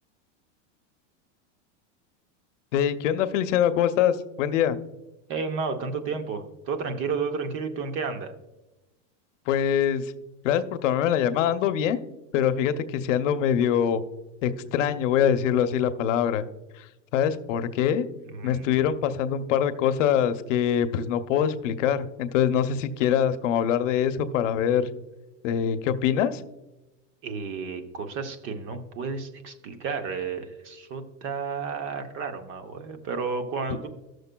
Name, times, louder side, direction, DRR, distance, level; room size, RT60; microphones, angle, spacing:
voice 1, 2.7-4.8 9.5-10.1 10.4-12.0 12.3-14.0 14.4-16.5 16.8-16.9 17.1-18.1 18.4-24.9 25.4-26.4, left 9 dB, 80° left, 10 dB, 0.7 m, -24 dB
voice 2, 5.3-8.3 18.3-18.7 27.2-33.9, right 5 dB, 35° right, 7 dB, 0.7 m, -32 dB
14.5 x 6.5 x 2.2 m, 1.0 s
supercardioid pair, 150°, 37 cm